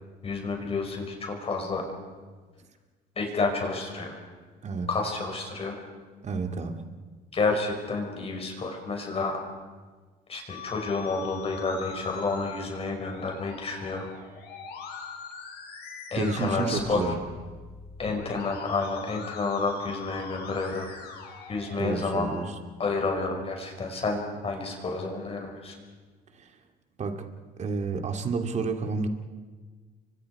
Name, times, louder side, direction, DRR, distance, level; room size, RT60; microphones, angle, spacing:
voice 1, 0.2-1.8 3.2-4.2 4.9-5.8 7.3-9.4 10.3-14.1 16.1-17.0 18.0-20.9 21.5-22.3 22.8-25.8, left 3 dB, 35° left, 2 dB, 5.7 m, -30 dB
voice 2, 6.2-6.8 16.1-17.2 21.8-22.5 26.3-26.5 27.0-27.3 27.6-29.1, right 4 dB, 45° right, 6 dB, 2.5 m, -30 dB
Musical instrument, 10.5-22.4, left 6 dB, 75° left, 5.4 m, -42 dB
29.5 x 25.0 x 4.9 m, 1.4 s
cardioid pair, 110°, 17 cm